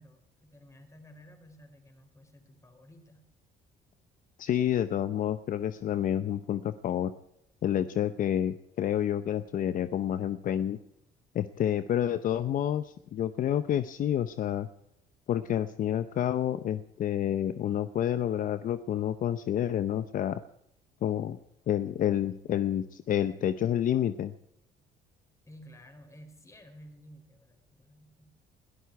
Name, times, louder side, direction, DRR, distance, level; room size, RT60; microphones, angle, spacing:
voice 1, 0.0-3.2 25.5-28.3, equal, 15° left, 5 dB, 4.5 m, -53 dB
voice 2, 4.4-7.1 7.6-10.8 11.3-14.7 15.3-20.4 21.0-21.4 21.7-24.3, left 10 dB, 55° left, 13 dB, 0.7 m, -29 dB
21.5 x 13.0 x 4.7 m, 0.80 s
cardioid pair, 110°, 17 cm